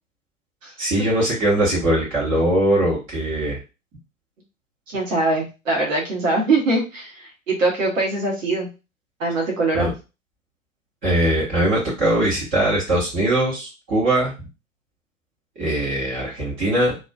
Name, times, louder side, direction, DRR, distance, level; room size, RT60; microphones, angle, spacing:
voice 1, 0.8-3.6 9.7-9.9 11.0-14.3 15.6-17.0, right 1 dB, 30° right, -7 dB, 1.1 m, -21 dB
voice 2, 4.9-8.7 9.2-9.9, right 2 dB, 75° right, -1 dB, 1.1 m, -22 dB
2.5 x 2.3 x 2.2 m, 0.29 s
figure-of-eight pair, 105°, 40 cm